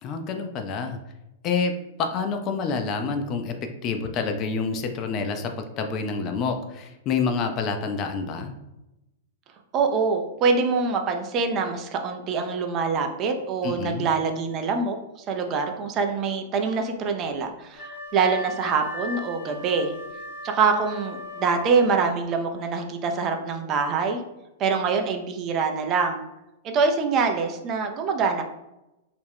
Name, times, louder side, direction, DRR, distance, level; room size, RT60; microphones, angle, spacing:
voice 1, 0.0-1.0 1.4-8.5 13.6-14.1, left 5 dB, 35° left, 6 dB, 0.4 m, -28 dB
voice 2, 9.7-19.9 20.4-24.2 24.6-26.2 26.6-28.4, right 5 dB, 35° right, 4 dB, 0.4 m, -25 dB
Wind instrument woodwind instrument, 17.7-22.2, left 2 dB, 85° left, 0.9 m, -38 dB
2.4 x 2.1 x 3.3 m, 0.94 s
hypercardioid pair, 105°, 0 cm